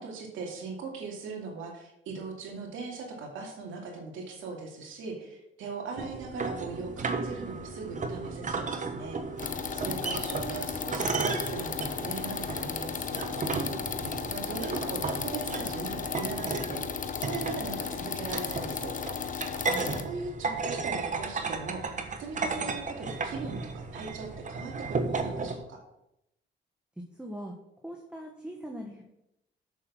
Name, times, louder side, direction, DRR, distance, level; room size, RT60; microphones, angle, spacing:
voice 1, 0.0-9.2 9.7-13.7 14.3-19.3 19.7-21.9 22.2-25.8, right 4 dB, 85° right, 1 dB, 2.4 m, -39 dB
sound 1, 6.0-25.6, right 4 dB, 40° right, 1.1 m, -34 dB
sound 2, 9.4-20.0, left 7 dB, 40° left, 0.9 m, -35 dB
voice 2, 27.1-27.5 27.8-29.0, equal, 5° right, 1 dB, 1.3 m, -41 dB
7.1 x 6.7 x 6.1 m, 0.84 s
cardioid pair, 90°, 20 cm